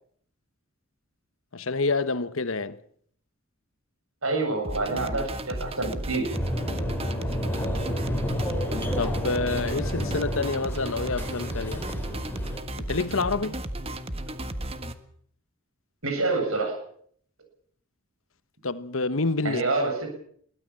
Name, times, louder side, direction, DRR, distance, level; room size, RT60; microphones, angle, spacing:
voice 1, 1.5-2.8 8.9-11.8 12.8-13.6 18.6-19.6, left 3 dB, 70° left, 1.2 m, -28 dB
voice 2, 4.2-6.3 16.0-16.7 19.4-20.1, right 3 dB, 80° right, 7.9 m, -27 dB
sound 1, 4.6-14.9, right 1 dB, 25° right, 1.4 m, -34 dB
sound 2, 6.3-12.6, equal, 10° left, 4.4 m, -30 dB
22.5 x 16.5 x 7.6 m
head